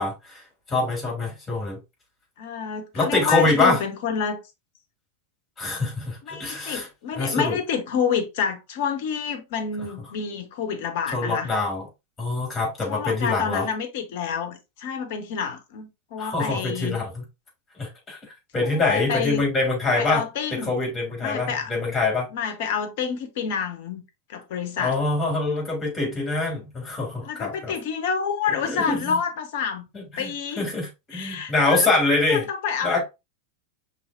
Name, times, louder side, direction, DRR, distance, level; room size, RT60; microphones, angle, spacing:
voice 1, 0.0-1.8 2.9-3.8 5.6-6.9 7.1-7.6 9.8-9.9 11.1-11.9 12.2-13.7 16.2-17.2 17.8-18.2 18.5-20.2 20.5-22.3 24.8-27.7 28.6-29.2 29.9-32.5 32.8-33.1, left 3 dB, 15° left, 2.8 m, -25 dB
voice 2, 2.4-4.4 6.2-11.5 12.9-17.0 18.6-19.5 20.0-20.7 21.2-21.7 22.3-24.0 24.3-25.0 27.2-29.9 30.1-30.7 31.1-31.9 32.3-33.0, left 7 dB, 50° left, 0.9 m, -28 dB
5.6 x 3.3 x 2.5 m
figure-of-eight pair, 90°, 0 cm